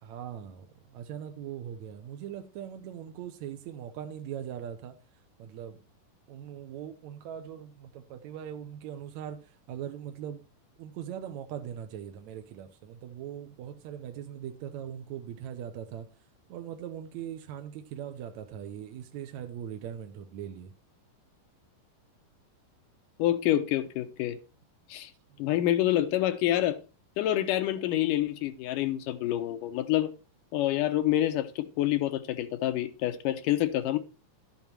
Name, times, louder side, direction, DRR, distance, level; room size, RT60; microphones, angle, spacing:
voice 1, 0.0-5.0 5.4-5.8 6.3-10.4 10.8-16.1 16.5-20.7 25.3-25.4, right 9 dB, 70° right, 1.9 m, -40 dB
voice 2, 23.2-24.4 24.9-25.1 25.4-26.8 27.2-30.1 30.5-34.0, left 13 dB, 85° left, 2.4 m, -27 dB
12.5 x 7.2 x 4.5 m
omnidirectional pair, 3.8 m